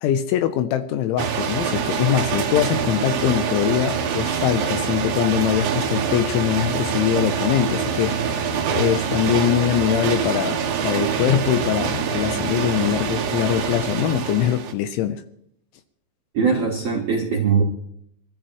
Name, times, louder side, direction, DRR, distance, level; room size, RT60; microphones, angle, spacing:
voice 1, 0.0-15.2, left 11 dB, 80° left, 10 dB, 3.0 m, -23 dB
sound 1, 1.2-14.7, right 7 dB, 65° right, 2.4 m, -25 dB
sound 2, 1.5-14.3, right 2 dB, 35° right, 1.4 m, -33 dB
voice 2, 16.3-17.6, right 5 dB, 85° right, -3 dB, 1.3 m, -20 dB
25.5 x 14.0 x 3.1 m, 0.69 s
omnidirectional pair, 5.7 m